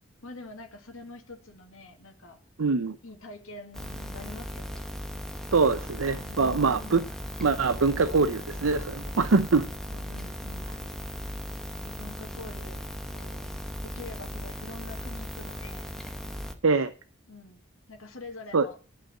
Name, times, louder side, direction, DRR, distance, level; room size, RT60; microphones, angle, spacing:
voice 1, 0.2-2.4 3.0-4.9 6.1-7.2 9.8-11.0 11.8-12.8 13.1-13.5 13.8-15.9 17.3-17.6 17.9-18.8, left 2 dB, 70° left, 1.9 m, -45 dB
voice 2, 2.6-3.0 5.5-7.0 7.4-9.7 16.6-16.9 18.5-18.7, right 4 dB, 70° right, 0.6 m, -23 dB
sound 1, 3.7-16.5, equal, ahead, 1.0 m, -37 dB
11.0 x 5.8 x 7.6 m
head